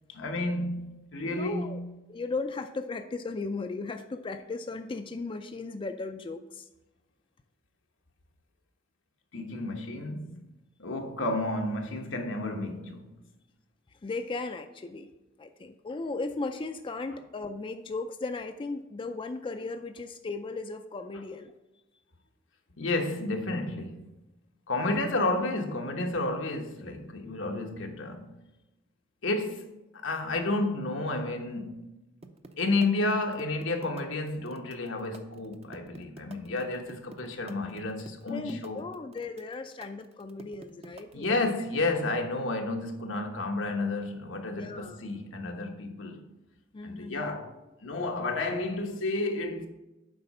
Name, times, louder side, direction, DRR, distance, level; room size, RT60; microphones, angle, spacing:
voice 1, 0.1-1.9 9.3-10.4 10.8-13.1 22.8-24.1 24.7-28.3 29.2-29.7 30.0-31.8 32.6-38.8 41.1-46.3 46.8-49.7, left 2 dB, 85° left, 1.2 m, -31 dB
voice 2, 1.2-1.8 2.1-6.7 14.0-15.1 15.4-21.5 24.8-25.0 38.3-41.5 44.6-45.0 46.7-47.3, left 3 dB, 25° left, 0.4 m, -36 dB
sound 1, 32.2-41.4, right 2 dB, 35° right, 0.6 m, -48 dB
7.8 x 4.9 x 5.5 m
head